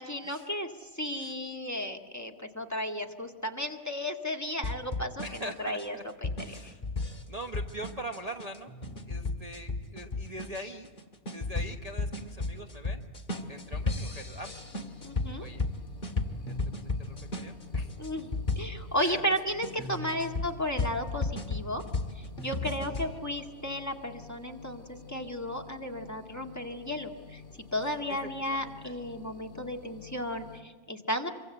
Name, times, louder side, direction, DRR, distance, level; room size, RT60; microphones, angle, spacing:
voice 1, 0.0-6.0 6.2-6.7 15.0-15.5 18.0-18.3 18.6-21.8 22.2-27.4 27.7-31.3, equal, 10° left, 3 dB, 1.9 m, -34 dB
sound 1, 4.6-19.1 19.6-23.1, left 3 dB, 35° left, 2.2 m, -34 dB
voice 2, 5.2-6.0 6.4-6.8 7.3-8.7 9.1-10.9 11.3-13.0 13.5-14.5 15.4-15.7 16.8-17.9 19.0-19.2 19.8-20.2 22.8-23.2 28.1-28.9, right 1 dB, 30° right, 2 dB, 1.2 m, -43 dB
sound 2, 13.3-30.6, left 4 dB, 55° left, 3.4 m, -50 dB
26.0 x 24.5 x 8.0 m, 1.4 s
omnidirectional pair, 1.5 m